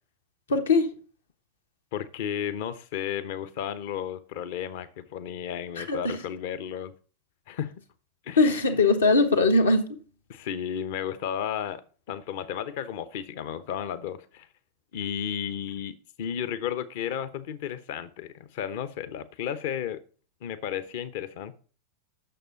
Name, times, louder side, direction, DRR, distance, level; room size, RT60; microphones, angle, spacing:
voice 1, 0.5-0.9 5.8-6.2 8.4-10.0, left 3 dB, 70° left, 1.3 m, -21 dB
voice 2, 1.9-6.9 7.5-7.7 8.2-8.4 10.3-14.5 14.9-20.0 20.4-21.5, left 9 dB, 50° left, 0.9 m, -33 dB
9.1 x 6.8 x 5.1 m
figure-of-eight pair, 90°, 0 cm